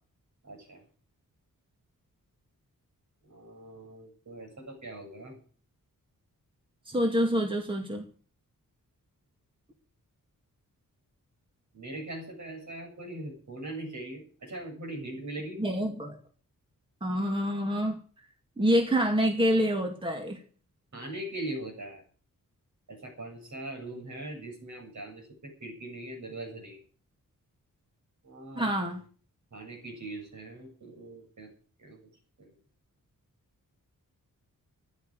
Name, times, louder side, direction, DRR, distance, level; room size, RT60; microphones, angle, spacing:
voice 1, 0.4-0.8 3.3-5.4 11.7-15.6 20.9-22.0 22.9-26.8 28.2-28.7 29.5-31.5 31.8-32.0 32.4-32.5, right 1 dB, 55° right, 2 dB, 7.7 m, -41 dB
voice 2, 6.9-8.0 15.6-16.1 17.0-18.0 18.6-20.4 28.6-29.0, equal, 15° right, 2 dB, 2.2 m, -27 dB
14.5 x 11.5 x 6.7 m, 0.42 s
wide cardioid pair, 165°, 34 cm